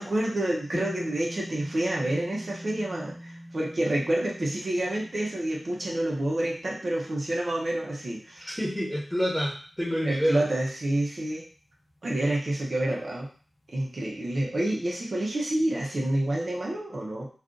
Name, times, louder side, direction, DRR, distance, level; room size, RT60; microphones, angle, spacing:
voice 1, 0.0-8.5 10.0-11.4 12.0-13.3 13.7-17.3, right 1 dB, 55° right, -3 dB, 0.7 m, -28 dB
sound 1, 0.7-9.2, equal, 30° left, 0.7 m, -44 dB
voice 2, 8.4-10.4, equal, 5° right, -6 dB, 1.0 m, -28 dB
2.5 x 2.4 x 3.7 m, 0.43 s
wide cardioid pair, 70°, 0 cm